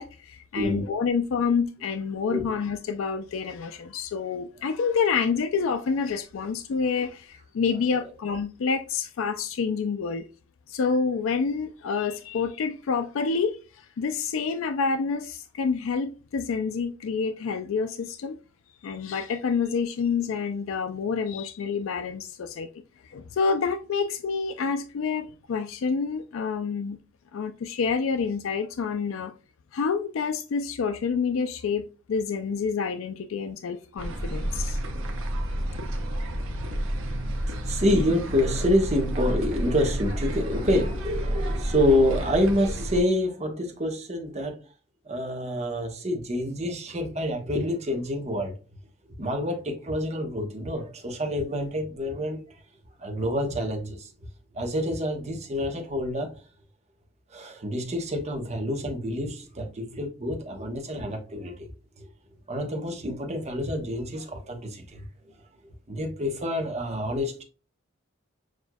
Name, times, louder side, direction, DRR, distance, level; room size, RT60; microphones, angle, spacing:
voice 1, 0.0-10.3 10.7-18.4 18.8-22.7 23.1-27.0 27.3-29.3 29.7-34.8, left 5 dB, 80° left, 0.4 m, -28 dB
voice 2, 0.5-1.0 2.3-2.5 37.5-44.6 45.1-48.5 49.2-52.6 53.0-54.1 54.5-56.3 57.3-61.7 62.0-62.1 62.5-65.1 65.9-67.4, left 1 dB, 35° right, 1.0 m, -27 dB
sound 1, 34.0-43.0, equal, 75° right, 0.9 m, -30 dB
6.3 x 2.6 x 2.3 m
head